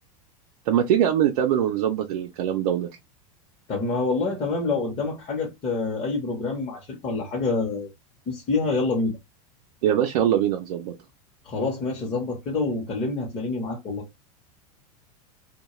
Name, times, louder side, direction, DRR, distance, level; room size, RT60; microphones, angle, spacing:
voice 1, 0.7-2.9 9.8-10.9, right 10 dB, 80° right, 0.5 m, -22 dB
voice 2, 3.7-7.9 8.3-9.2 11.4-14.0, left 3 dB, 30° left, 0.8 m, -27 dB
2.2 x 2.2 x 2.9 m
supercardioid pair, 125°, 19 cm